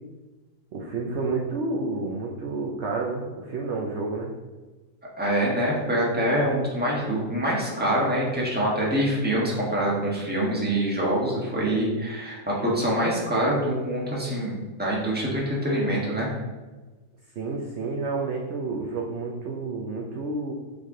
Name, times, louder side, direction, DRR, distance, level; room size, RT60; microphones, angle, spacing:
voice 1, 0.7-4.3 17.4-20.5, right 3 dB, 60° right, -1 dB, 0.8 m, -30 dB
voice 2, 5.2-16.3, right 1 dB, 5° right, -5 dB, 1.2 m, -25 dB
7.3 x 3.4 x 3.8 m, 1.2 s
omnidirectional pair, 1.7 m